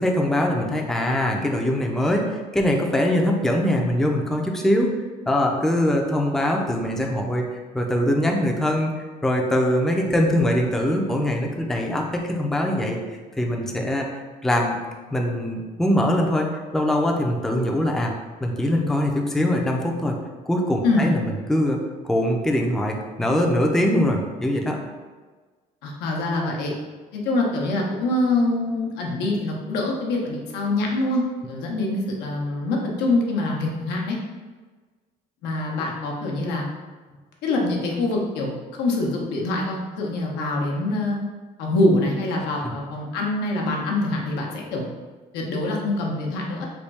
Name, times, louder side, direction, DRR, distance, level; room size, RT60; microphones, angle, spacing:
voice 1, 0.0-4.9 5.3-7.4 7.7-8.9 9.2-13.0 13.4-14.1 14.4-14.8 15.1-18.1 18.4-20.2 20.5-21.8 22.0-24.8 42.6-42.7, left 1 dB, ahead, 0 dB, 0.4 m, -22 dB
voice 2, 25.8-26.7 27.1-31.2 31.5-34.2 35.4-36.6 37.4-38.5 38.8-41.2 41.6-44.8 45.3-46.7, left 2 dB, 90° left, -2 dB, 0.8 m, -24 dB
3.5 x 2.3 x 4.0 m, 1.4 s
cardioid pair, 110°, 17 cm